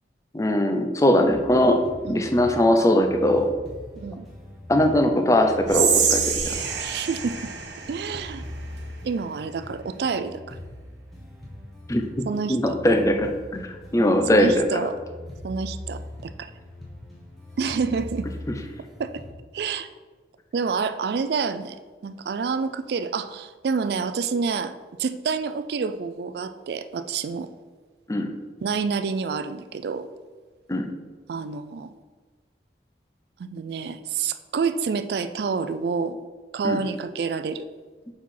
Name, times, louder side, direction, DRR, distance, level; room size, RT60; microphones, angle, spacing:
voice 1, 0.3-1.8 2.1-3.5 4.7-6.5 11.9-12.0 12.5-13.6 13.9-14.6 28.1-28.3 30.7-30.9 36.6-36.8, left 1 dB, 20° left, 4 dB, 0.5 m, -20 dB
sound 1, 1.2-19.3, left 1 dB, ahead, 1.2 m, -41 dB
voice 2, 4.0-4.3 6.8-7.4 7.9-8.4 9.0-10.6 12.3-12.8 14.0-15.0 15.4-16.5 17.6-18.3 19.0-19.1 19.5-19.9 20.5-21.8 22.0-27.5 28.6-30.1 31.3-31.9 33.4-36.2 36.5-37.6, right 5 dB, 65° right, 12 dB, 0.3 m, -28 dB
Whispering, 5.7-8.9, right 7 dB, 90° right, 0.9 m, -26 dB
4.7 x 4.4 x 5.5 m, 1.3 s
head